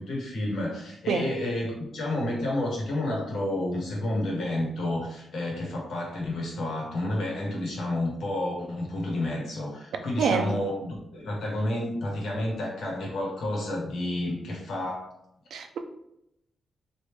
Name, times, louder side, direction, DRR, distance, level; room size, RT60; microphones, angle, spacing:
voice 1, 0.0-15.1, left 1 dB, 75° left, 1.2 m, -30 dB
voice 2, 10.2-10.5 15.5-15.8, right 6 dB, 85° right, 0.4 m, -26 dB
3.3 x 2.5 x 3.2 m
wide cardioid pair, 160°, 0 cm